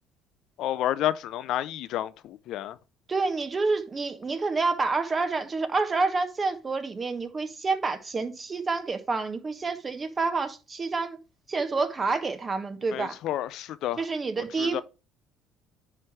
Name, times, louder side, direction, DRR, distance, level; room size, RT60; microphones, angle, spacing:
voice 1, 0.6-2.8 12.9-14.1 14.6-14.8, left 12 dB, 65° left, 0.5 m, -30 dB
voice 2, 3.1-11.2 11.5-13.2 14.0-14.8, right 4 dB, 30° right, 1.2 m, -28 dB
9.7 x 3.3 x 4.7 m
supercardioid pair, 80°, 0 cm